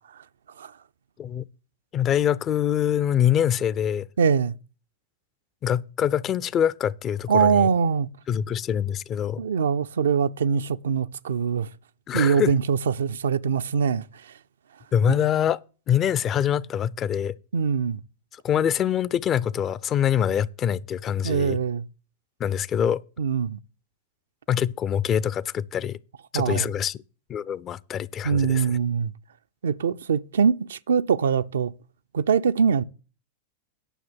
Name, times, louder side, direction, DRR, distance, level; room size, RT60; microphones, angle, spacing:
voice 1, 1.9-4.1 5.6-7.7 8.3-9.4 12.1-12.6 14.9-15.6 15.9-17.3 18.3-21.6 22.4-23.0 24.5-26.0 26.3-27.0 27.3-28.8, left 9 dB, 30° left, 0.4 m, -24 dB
voice 2, 4.2-4.5 7.3-8.1 9.4-11.7 12.1-14.3 17.5-18.0 21.2-21.9 23.2-23.6 26.3-26.7 28.2-29.1 29.6-31.7 32.1-32.8, right 6 dB, 65° right, 0.4 m, -23 dB
10.0 x 6.0 x 6.3 m
figure-of-eight pair, 90°, 0 cm